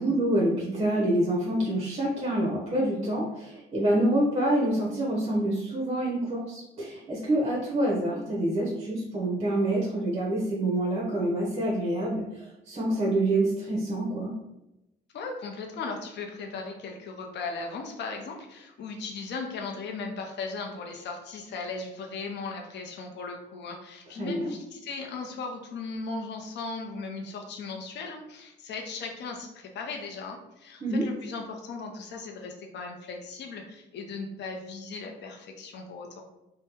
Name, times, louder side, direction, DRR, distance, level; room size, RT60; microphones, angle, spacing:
voice 1, 0.0-14.3 24.2-24.5 30.8-31.0, right 1 dB, 30° right, -3 dB, 0.7 m, -27 dB
voice 2, 15.1-36.2, left 4 dB, 60° left, 2 dB, 0.5 m, -37 dB
2.7 x 2.1 x 3.4 m, 0.92 s
cardioid pair, 90°, 20 cm